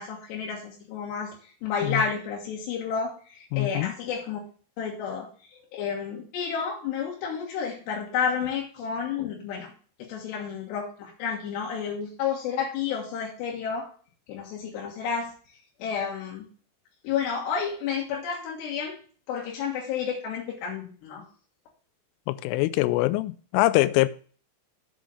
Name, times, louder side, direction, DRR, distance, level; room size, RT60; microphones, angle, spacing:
voice 1, 0.0-4.4 4.8-9.7 10.0-13.9 14.3-15.3 15.8-16.5 17.0-19.0 19.3-21.2, left 6 dB, 70° left, 3.3 m, -31 dB
voice 2, 3.5-3.9 22.3-24.1, left 18 dB, 90° left, 3.1 m, -23 dB
7.4 x 5.4 x 6.2 m
omnidirectional pair, 5.6 m